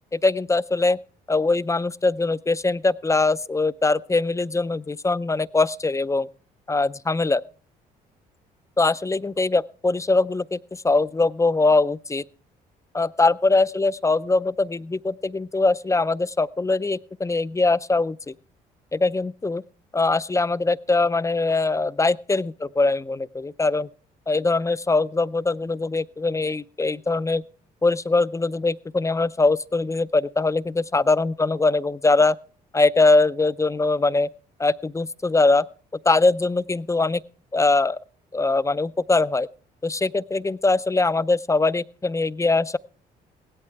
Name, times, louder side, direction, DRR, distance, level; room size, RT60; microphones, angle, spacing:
voice 1, 0.1-1.0 1.3-6.3 6.7-7.4 8.8-12.2 12.9-18.3 18.9-19.6 19.9-23.9 24.3-27.4 27.8-32.4 32.7-34.3 34.6-35.7 36.1-37.2 37.5-38.0 38.3-39.5 39.8-42.8, left 3 dB, 15° left, 0.5 m, -22 dB
17.0 x 12.0 x 3.4 m
supercardioid pair, 65°, 18 cm